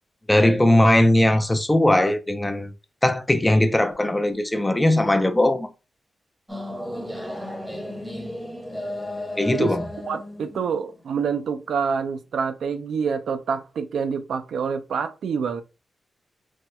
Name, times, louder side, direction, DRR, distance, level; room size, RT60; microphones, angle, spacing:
voice 1, 0.3-2.7 3.0-5.7 9.4-9.8, left 1 dB, 10° left, 0.4 m, -19 dB
sound 1, 6.5-11.6, left 1 dB, 5° right, 0.8 m, -34 dB
voice 2, 10.0-15.6, right 6 dB, 85° right, 0.3 m, -27 dB
4.2 x 2.1 x 2.2 m
wide cardioid pair, 100°, 0 cm